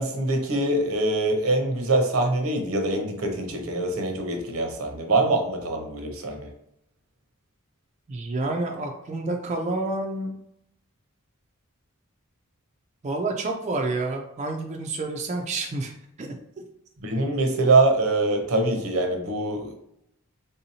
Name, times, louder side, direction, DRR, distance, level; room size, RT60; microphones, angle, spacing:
voice 1, 0.0-6.5 17.0-19.7, right 2 dB, 80° right, 4 dB, 0.7 m, -24 dB
voice 2, 8.1-10.4 13.0-16.4, right 2 dB, 35° right, 2 dB, 0.3 m, -29 dB
3.5 x 2.7 x 2.7 m, 0.78 s
head